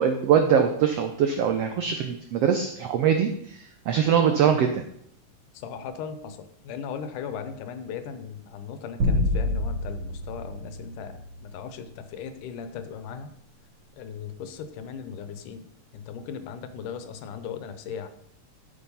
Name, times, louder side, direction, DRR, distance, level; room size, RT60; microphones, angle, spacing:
voice 1, 0.0-4.8, right 7 dB, 85° right, 6 dB, 1.3 m, -23 dB
voice 2, 5.5-13.3 14.0-15.7 15.9-18.1, left 7 dB, 75° left, 10 dB, 2.3 m, -38 dB
sound 1, 9.0-11.6, left 1 dB, 70° right, 4.6 m, -27 dB
12.0 x 6.8 x 5.5 m, 0.72 s
omnidirectional pair, 3.9 m